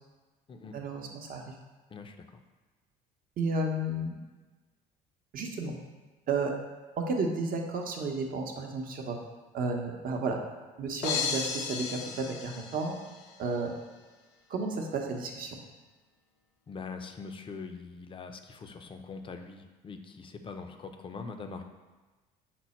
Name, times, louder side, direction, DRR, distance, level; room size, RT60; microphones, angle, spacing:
voice 1, 0.7-1.5 3.4-4.2 5.3-5.8 6.3-6.5 7.1-9.2 9.5-10.4 10.8-13.0 13.4-13.7 14.5-15.6, right 3 dB, 50° right, 2 dB, 0.8 m, -32 dB
voice 2, 1.9-2.4 16.7-21.6, left 4 dB, 30° left, 6 dB, 0.5 m, -43 dB
sound 1, 11.0-13.3, left 6 dB, 75° left, 0.5 m, -34 dB
5.9 x 2.1 x 4.2 m, 1.3 s
supercardioid pair, 75°, 18 cm